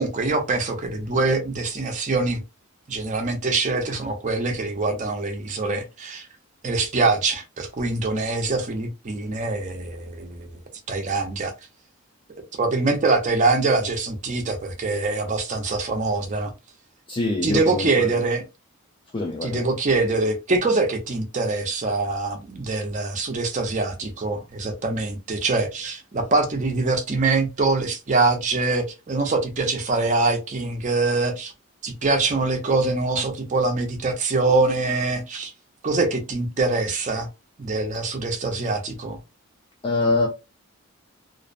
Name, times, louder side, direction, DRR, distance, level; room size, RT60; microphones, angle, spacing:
voice 1, 0.0-2.4 2.9-6.3 6.6-10.5 10.9-11.5 12.6-16.5 17.4-18.4 19.4-31.5 31.8-35.5 35.8-37.3 37.6-39.2, right 3 dB, 35° right, 0.5 m, -24 dB
voice 2, 17.1-18.3 19.1-19.7 39.8-40.3, left 2 dB, 25° left, 0.3 m, -24 dB
2.5 x 2.0 x 2.5 m
head